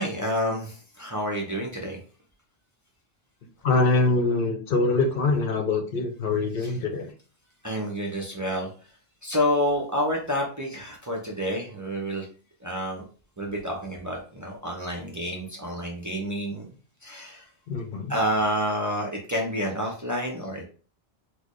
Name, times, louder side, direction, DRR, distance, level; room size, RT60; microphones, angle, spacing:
voice 1, 0.0-2.0 6.6-6.7 7.6-8.7 9.2-12.3 12.6-13.0 13.4-16.7 17.0-17.5 18.1-20.7, equal, 20° right, -2 dB, 0.6 m, -29 dB
voice 2, 3.6-7.1 17.7-18.1, left 3 dB, 65° left, 4 dB, 0.8 m, -24 dB
4.4 x 2.1 x 3.0 m, 0.40 s
omnidirectional pair, 1.0 m